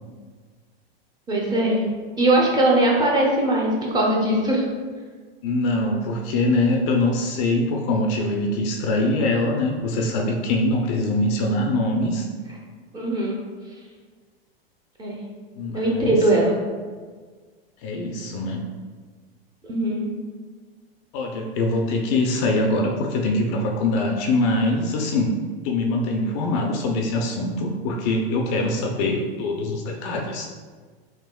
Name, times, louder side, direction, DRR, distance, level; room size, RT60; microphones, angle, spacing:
voice 1, 1.3-1.8 2.2-4.7 12.9-13.4 15.0-15.2 15.7-16.6 19.6-20.1, right 1 dB, 15° right, -3 dB, 0.5 m, -20 dB
voice 2, 5.4-12.3 15.5-16.2 17.8-18.7 21.1-25.4 25.6-30.5, left 2 dB, 40° left, 2 dB, 0.4 m, -23 dB
3.5 x 2.9 x 2.2 m, 1.5 s
hypercardioid pair, 115°, 31 cm